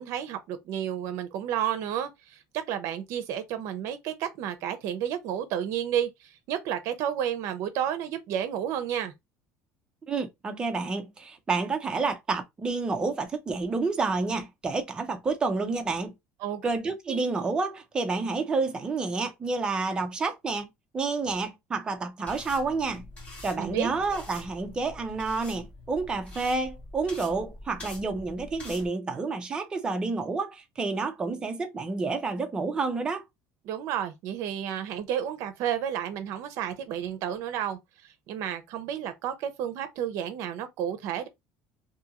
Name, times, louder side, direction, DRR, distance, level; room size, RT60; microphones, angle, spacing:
voice 1, 0.0-2.4 2.7-9.1 16.4-16.7 23.6-23.9 33.6-41.3, right 10 dB, 55° right, 0.6 m, -31 dB
voice 2, 10.1-16.1 16.6-20.7 20.9-23.0 23.4-33.2, right 3 dB, 15° right, 0.5 m, -29 dB
sound 1, 22.3-28.9, left 2 dB, 20° left, 1.1 m, -45 dB
2.7 x 2.5 x 2.8 m
cardioid pair, 175°, 6 cm